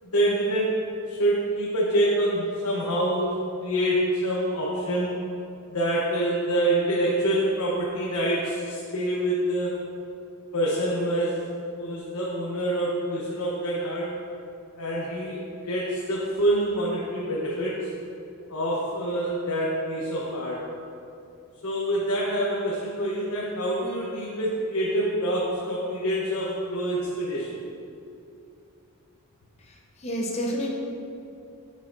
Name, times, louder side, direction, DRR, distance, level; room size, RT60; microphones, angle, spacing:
voice 1, 0.0-0.8 1.1-3.3 3.6-5.1 5.7-9.8 10.5-11.4 11.7-14.1 14.8-17.9 18.5-20.7 21.6-27.6, right 1 dB, 90° left, -5 dB, 0.9 m, -26 dB
voice 2, 29.6-30.7, equal, 30° left, -1 dB, 0.7 m, -30 dB
9.2 x 5.4 x 2.6 m, 2.7 s
head